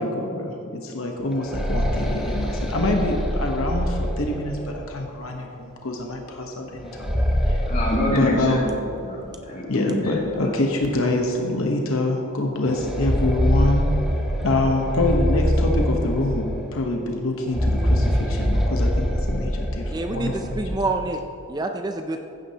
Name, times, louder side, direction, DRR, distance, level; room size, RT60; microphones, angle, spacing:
voice 1, 0.0-7.1 7.4-7.6 8.1-8.6 9.7-13.9 14.4-20.8, left 2 dB, 65° left, 2 dB, 1.0 m, -25 dB
sound 1, 1.2-5.0 6.8-9.0 9.3-9.4 10.2-10.3 10.8-11.0 12.6-16.8 17.4-20.8, equal, ahead, 0.9 m, -24 dB
voice 2, 7.7-8.7 9.0-10.5, left 1 dB, 35° left, -5 dB, 2.4 m, -26 dB
voice 3, 19.9-21.2 21.5-22.2, right 2 dB, 20° right, 5 dB, 0.4 m, -27 dB
15.5 x 9.4 x 2.9 m, 2.7 s
head